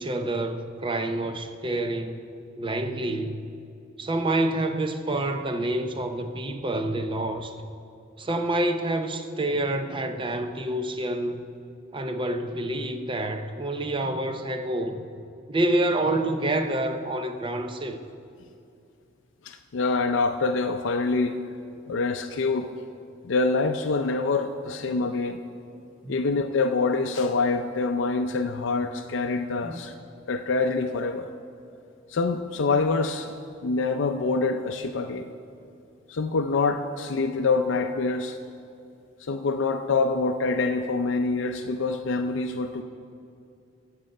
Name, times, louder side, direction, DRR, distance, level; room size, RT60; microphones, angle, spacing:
voice 1, 0.0-2.2 2.6-3.4 4.0-7.5 8.2-11.4 11.9-15.0 15.5-18.0 26.0-26.2 29.6-29.8, right 1 dB, 25° right, 8 dB, 0.6 m, -27 dB
voice 2, 19.4-21.4 21.9-22.7 23.2-25.4 26.1-29.9 30.3-31.3 32.1-33.3 33.6-35.3 36.1-38.4 39.3-42.8, left 3 dB, 70° left, 5 dB, 0.4 m, -25 dB
15.0 x 6.8 x 5.4 m, 2.6 s
head